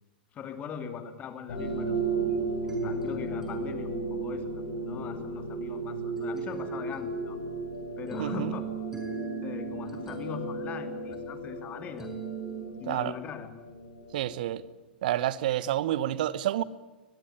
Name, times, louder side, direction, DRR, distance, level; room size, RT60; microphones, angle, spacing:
voice 1, 0.3-1.9 2.6-4.5 4.8-7.4 8.0-8.7 9.4-12.1 12.7-13.5, left 7 dB, 30° left, 2.5 m, -41 dB
sound 1, 1.5-14.6, right 2 dB, 75° left, 6.8 m, -35 dB
sound 2, 1.6-12.7, right 5 dB, 10° right, 5.8 m, -39 dB
voice 2, 8.2-8.5 12.9-13.1 14.1-14.6 15.0-16.6, right 13 dB, 55° right, 1.1 m, -29 dB
22.5 x 21.5 x 9.8 m
figure-of-eight pair, 100°, 5 cm